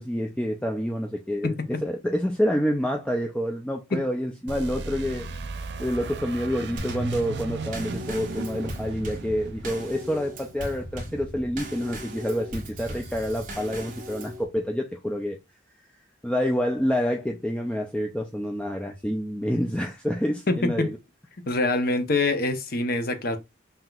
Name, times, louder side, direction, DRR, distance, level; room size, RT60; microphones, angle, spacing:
voice 1, 0.0-5.3 5.8-15.4 16.2-21.0, equal, 5° left, 0.3 m, -28 dB
sound 1, 4.5-11.1, right 4 dB, 60° right, 0.4 m, -36 dB
Drum kit / Snare drum / Bass drum, 6.8-14.4, equal, 40° right, 1.2 m, -38 dB
voice 2, 20.5-20.9 21.5-23.4, left 2 dB, 50° left, 0.7 m, -25 dB
5.7 x 2.8 x 2.3 m
head